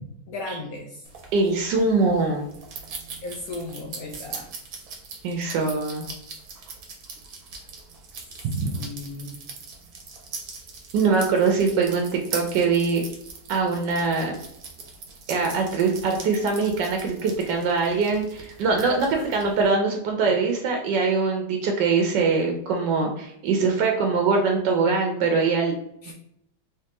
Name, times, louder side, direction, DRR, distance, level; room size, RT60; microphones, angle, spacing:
voice 1, 0.3-1.1 3.2-4.5 8.6-9.4 26.0-26.1, left 2 dB, 70° left, 0 dB, 0.9 m, -36 dB
sound 1, 1.1-19.7, right 4 dB, 60° right, 1.1 m, -41 dB
voice 2, 1.3-2.4 5.2-6.1 8.4-8.7 10.9-12.1 12.3-13.0 13.5-14.4 15.3-25.7 26.1-26.2, right 4 dB, 85° right, 2 dB, 1.3 m, -23 dB
3.3 x 3.1 x 2.9 m, 0.78 s
omnidirectional pair, 1.8 m